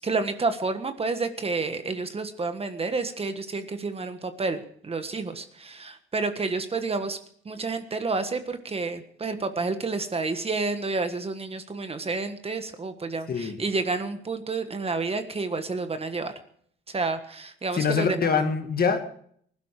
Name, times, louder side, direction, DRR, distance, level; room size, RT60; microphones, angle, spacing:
voice 1, 0.0-7.2 7.4-16.3 16.9-18.3, right 3 dB, 30° right, 9 dB, 1.5 m, -30 dB
voice 2, 17.7-19.0, left 5 dB, 50° left, 6 dB, 2.1 m, -24 dB
19.5 x 12.0 x 4.9 m, 0.62 s
cardioid pair, 90°, 20 cm